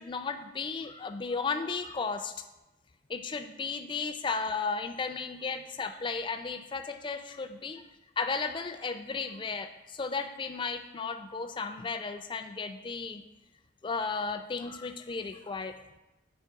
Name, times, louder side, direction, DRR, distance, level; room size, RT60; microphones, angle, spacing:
voice 1, 0.0-2.3 3.1-7.8 8.2-13.2 13.8-15.7, left 4 dB, 25° left, 7 dB, 0.3 m, -34 dB
7.9 x 3.1 x 4.6 m, 1.0 s
head